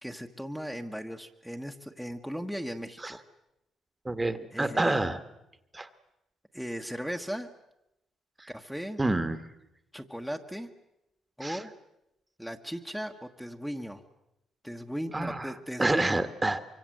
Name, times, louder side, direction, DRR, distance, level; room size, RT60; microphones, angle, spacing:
voice 1, 0.0-3.2 4.5-5.0 6.5-7.5 8.5-9.0 9.9-10.7 11.4-11.7 12.4-14.0 14.6-16.2, equal, ahead, 3 dB, 1.5 m, -37 dB
voice 2, 4.0-5.2 5.7-5.9 8.4-8.5 9.0-9.4 11.4-11.6 15.1-15.5 15.8-16.6, right 2 dB, 15° right, 10 dB, 1.6 m, -28 dB
25.0 x 23.5 x 7.8 m, 0.87 s
cardioid pair, 90°, 0 cm